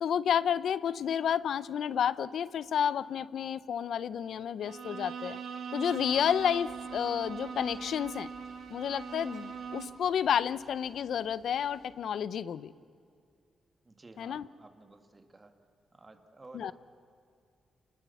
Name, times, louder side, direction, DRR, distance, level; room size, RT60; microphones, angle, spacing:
voice 1, 0.0-5.4 5.7-8.3 8.7-12.7 14.2-14.5 16.5-16.7, left 8 dB, 75° left, 18 dB, 0.7 m, -30 dB
Bowed string instrument, 4.6-10.1, right 6 dB, 75° right, 2.1 m, -41 dB
sound 1, 5.8-11.9, right 3 dB, 45° right, 7.8 m, -59 dB
voice 2, 13.8-15.5 15.9-16.7, right 2 dB, 20° right, 6 dB, 2.1 m, -53 dB
29.0 x 20.5 x 7.1 m, 2.4 s
wide cardioid pair, 130°, 0 cm